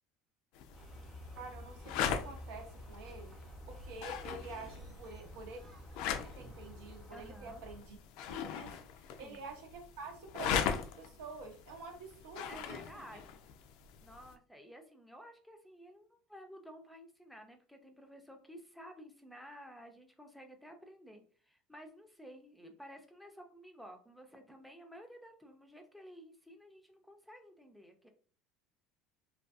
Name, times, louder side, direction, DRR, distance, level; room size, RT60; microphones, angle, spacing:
sound 1, 0.5-14.3, left 7 dB, 70° left, 0.3 m, -41 dB
sound 2, 0.7-7.8, equal, 20° right, 0.8 m, -51 dB
voice 1, 1.4-3.3 3.7-5.6 6.1-8.0 8.3-12.8, right 4 dB, 80° right, 3 dB, 0.8 m, -48 dB
voice 2, 7.1-7.6 9.2-9.5 12.5-13.3 14.0-28.1, equal, ahead, 4 dB, 0.5 m, -53 dB
2.4 x 2.3 x 2.4 m, 0.43 s
supercardioid pair, 105°, 0 cm